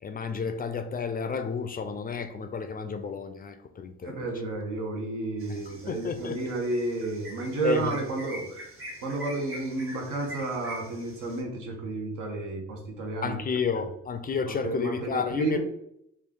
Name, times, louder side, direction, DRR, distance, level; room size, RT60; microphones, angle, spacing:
voice 1, 0.0-4.3 5.9-6.4 7.6-7.9 13.2-15.6, left 5 dB, 30° left, 8 dB, 0.4 m, -31 dB
voice 2, 4.0-8.7 9.0-13.4 14.5-15.6, right 3 dB, 85° right, 1 dB, 1.0 m, -32 dB
sound 1, 5.4-11.4, equal, 45° right, 1.4 m, -44 dB
3.2 x 2.3 x 3.7 m, 0.78 s
cardioid pair, 90°, 30 cm